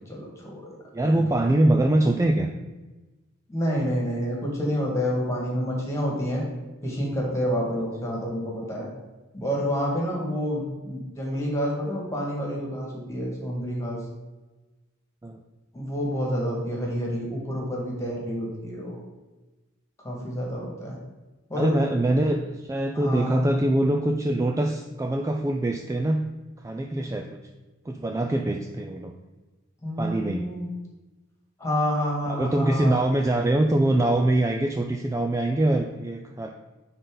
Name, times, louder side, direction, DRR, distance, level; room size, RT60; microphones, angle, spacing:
voice 1, 0.0-0.8 1.0-1.2 3.5-6.4 6.8-8.9 9.3-14.0 15.7-19.0 20.0-21.0 21.5-21.7 22.9-23.4 29.8-30.7 31.6-33.0, equal, 15° left, -2 dB, 1.9 m, -28 dB
voice 2, 0.9-2.5 15.2-15.4 21.6-26.2 26.6-27.4 27.9-29.2 30.0-30.5 32.3-36.5, right 1 dB, 15° right, 3 dB, 0.3 m, -23 dB
9.6 x 4.0 x 3.9 m, 1.1 s
head